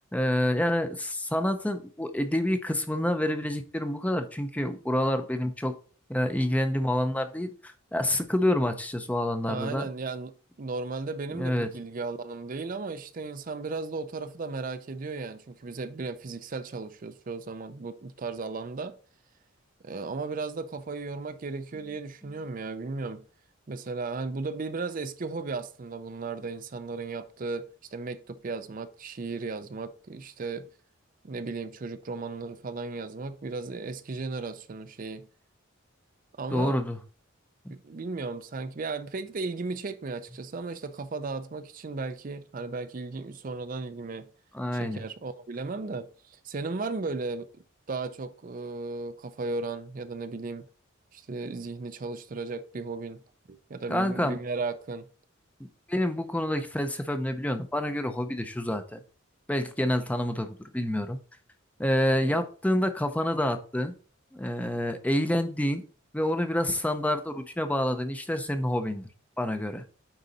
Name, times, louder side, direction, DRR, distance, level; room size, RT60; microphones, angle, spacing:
voice 1, 0.0-5.7 6.1-9.9 11.3-11.7 36.5-37.0 37.6-37.7 44.5-45.0 53.9-54.4 55.9-59.0 59.5-61.2 61.8-63.9 64.3-65.8 66.1-69.1 69.4-69.8, left 1 dB, 5° left, 0.6 m, -28 dB
voice 2, 9.5-19.0 19.8-23.2 23.7-30.7 31.2-35.3 36.4-36.8 37.7-44.3 44.8-47.5 47.9-50.7 51.1-53.2 53.5-55.1 62.2-62.4, right 3 dB, 40° right, 0.5 m, -35 dB
9.0 x 4.0 x 4.0 m
head